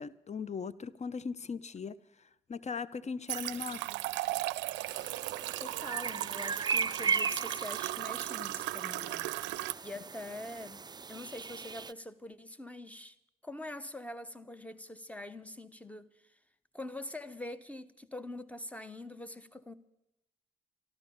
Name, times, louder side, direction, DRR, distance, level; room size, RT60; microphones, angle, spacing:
voice 1, 0.0-3.9, left 5 dB, 40° left, 0.6 m, -39 dB
sound 1, 3.3-9.7, right 18 dB, 80° right, 0.4 m, -36 dB
sound 2, 4.9-11.9, right 5 dB, 25° right, 0.4 m, -37 dB
voice 2, 5.6-9.3 9.8-10.8 11.1-13.2 13.4-16.4 16.7-19.7, left 1 dB, 5° left, 1.1 m, -44 dB
13.0 x 13.0 x 7.1 m
supercardioid pair, 50°, 18 cm